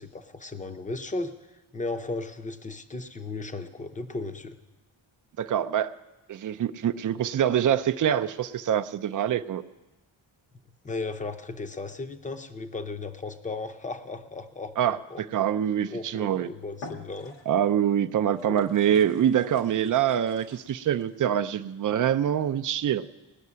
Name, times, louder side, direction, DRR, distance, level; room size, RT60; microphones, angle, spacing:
voice 1, 0.0-1.3 1.7-4.6 10.8-15.2 15.9-17.3 18.5-18.6, left 3 dB, 15° left, 9 dB, 0.6 m, -35 dB
voice 2, 5.4-5.9 6.3-9.6 14.8-16.5 17.5-23.0, right 9 dB, 40° right, 10 dB, 0.5 m, -25 dB
sound 1, 16.1-16.3 16.7-17.7 18.3-21.1, left 3 dB, 80° left, 1.6 m, -47 dB
18.5 x 6.5 x 9.5 m, 1.1 s
wide cardioid pair, 150°, 49 cm